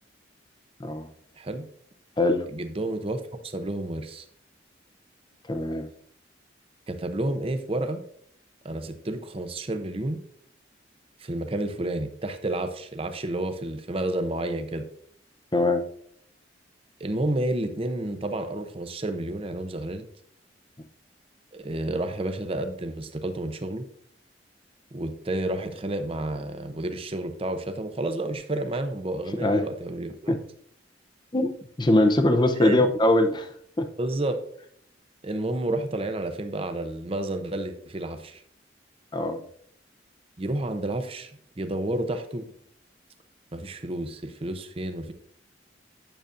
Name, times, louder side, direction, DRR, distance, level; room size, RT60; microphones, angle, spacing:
voice 1, 2.5-4.3 6.9-8.0 8.6-10.2 11.2-14.8 17.0-20.0 21.5-23.8 24.9-30.4 32.5-32.8 34.0-34.4 35.2-38.4 40.4-41.3 41.6-42.4 43.5-45.1, right 1 dB, 30° right, 8 dB, 0.6 m, -30 dB
voice 2, 5.5-5.9 15.5-15.8 29.4-29.6 30.3-30.4 31.3-31.5 31.8-33.5 33.8-33.9 39.1-39.4, left 1 dB, 25° left, 7 dB, 0.6 m, -21 dB
9.0 x 6.8 x 2.5 m, 0.64 s
head